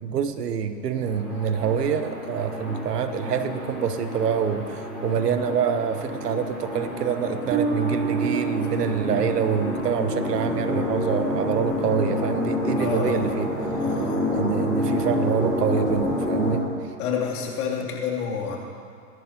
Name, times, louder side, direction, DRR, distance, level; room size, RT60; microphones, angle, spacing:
voice 1, 0.0-13.5 14.3-16.7, right 7 dB, 80° right, 9 dB, 1.2 m, -26 dB
sound 1, 1.0-16.6, left 1 dB, ahead, 3.8 m, -29 dB
Bass guitar, 7.5-10.5, right 6 dB, 20° right, 1.0 m, -29 dB
voice 2, 12.7-13.3 13.8-14.2 17.0-18.6, left 7 dB, 65° left, -2 dB, 3.1 m, -29 dB
23.0 x 11.0 x 3.0 m, 2.4 s
hypercardioid pair, 135°, 47 cm